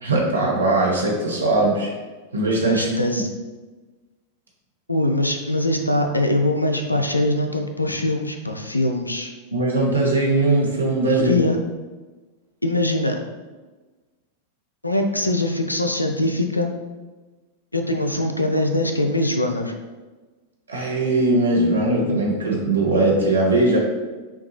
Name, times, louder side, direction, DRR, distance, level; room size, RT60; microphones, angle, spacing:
voice 1, 0.0-1.9 2.3-2.9 3.1-3.2 9.5-11.4 20.7-23.8, right 2 dB, 80° right, -3 dB, 0.9 m, -20 dB
voice 2, 2.6-3.3 4.9-9.3 11.1-11.6 12.6-13.2 14.8-16.7 17.7-19.7, left 1 dB, 85° left, 5 dB, 0.4 m, -22 dB
5.8 x 2.4 x 2.8 m, 1.3 s
figure-of-eight pair, 90°, 0 cm